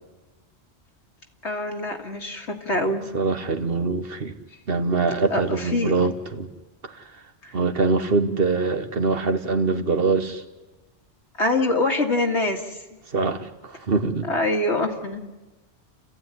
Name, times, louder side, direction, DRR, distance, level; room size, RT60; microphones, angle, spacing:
voice 1, 1.4-3.1 5.3-6.1 7.4-7.5 11.4-12.8 14.3-15.3, left 2 dB, 85° left, 4 dB, 2.4 m, -25 dB
voice 2, 2.8-4.4 4.7-6.5 6.9-7.1 7.5-10.4 13.1-14.3, right 4 dB, 55° right, 8 dB, 1.5 m, -24 dB
30.0 x 14.5 x 9.8 m, 1.2 s
omnidirectional pair, 1.1 m